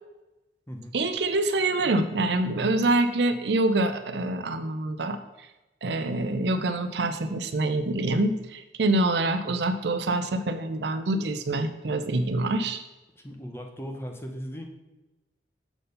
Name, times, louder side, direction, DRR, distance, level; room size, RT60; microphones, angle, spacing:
voice 1, 0.9-5.2 5.8-12.8, right 2 dB, 65° right, 8 dB, 0.6 m, -26 dB
voice 2, 13.2-14.7, equal, 15° left, 3 dB, 0.8 m, -38 dB
7.1 x 4.3 x 5.2 m, 1.0 s
head